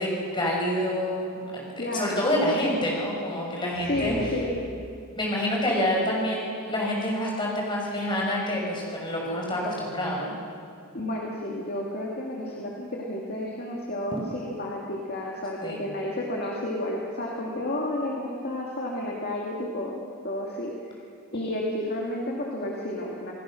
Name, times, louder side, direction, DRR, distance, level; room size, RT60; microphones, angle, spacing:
voice 1, 0.0-4.4 5.2-10.3 15.6-15.9, left 1 dB, 20° left, -3 dB, 5.9 m, -27 dB
voice 2, 1.8-2.2 3.9-4.6 10.9-20.7 21.3-23.3, left 1 dB, 45° left, -2 dB, 2.4 m, -31 dB
sound 1, 3.7-5.3, equal, 90° right, 6.5 m, -36 dB
28.0 x 17.5 x 6.4 m, 2.5 s
head